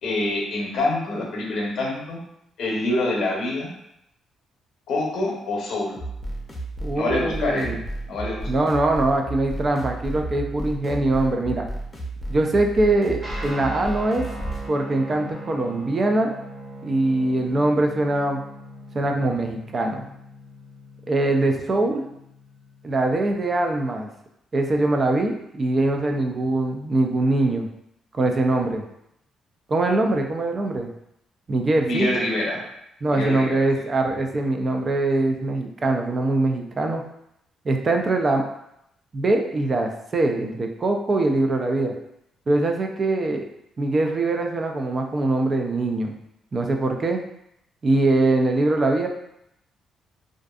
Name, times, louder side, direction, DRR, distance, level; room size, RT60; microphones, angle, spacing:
voice 1, 0.0-2.2 2.6-3.7 4.9-6.0 6.9-7.8 8.1-8.5 31.8-32.6 33.1-33.6, left 2 dB, 75° left, -2 dB, 0.8 m, -26 dB
sound 1, 5.9-14.7, right 1 dB, 20° left, 0.6 m, -33 dB
voice 2, 6.8-7.8 8.5-11.7 12.3-14.2 14.7-16.3 16.8-18.4 18.9-20.0 21.1-22.0 22.8-24.1 24.5-27.7 28.1-28.8 29.7-30.9 31.5-32.1 33.0-37.0 37.7-38.4 39.1-41.9 42.5-43.5 43.8-46.1 46.5-47.2 47.8-49.1, right 2 dB, 40° right, 3 dB, 0.3 m, -22 dB
Guitar, 13.2-23.0, right 1 dB, 20° right, 0.9 m, -40 dB
2.5 x 2.4 x 2.3 m, 0.79 s
cardioid pair, 90°, 0 cm